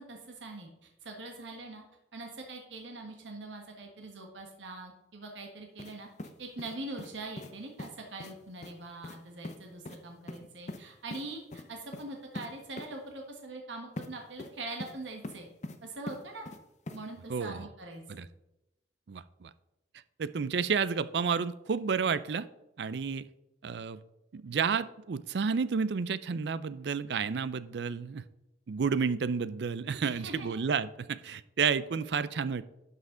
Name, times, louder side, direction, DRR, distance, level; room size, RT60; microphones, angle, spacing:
voice 1, 0.0-1.8 2.1-6.1 6.4-15.5 15.8-16.5 16.9-18.3 30.0-30.6, right 2 dB, 85° right, 2 dB, 1.4 m, -43 dB
sound 1, 5.8-5.9 6.2-7.1 7.4-7.5 7.8-7.9 8.2-8.3 8.6-8.7 9.0-9.2 9.4-9.6 9.9-10.0 10.3-10.8 11.1-11.2 11.5-11.6 11.9-12.1 12.4-12.5 12.8-12.9 14.0-14.1 14.4-15.0 15.2-15.8 16.1-16.6 16.9-17.0, left 2 dB, 40° left, 0.7 m, -41 dB
voice 2, 17.3-17.7 18.1-18.3 19.1-19.5 20.2-22.5 22.8-23.3 23.6-24.0 24.3-28.2 28.7-32.6, right 5 dB, 65° right, 16 dB, 0.4 m, -31 dB
11.5 x 5.7 x 3.8 m, 0.93 s
head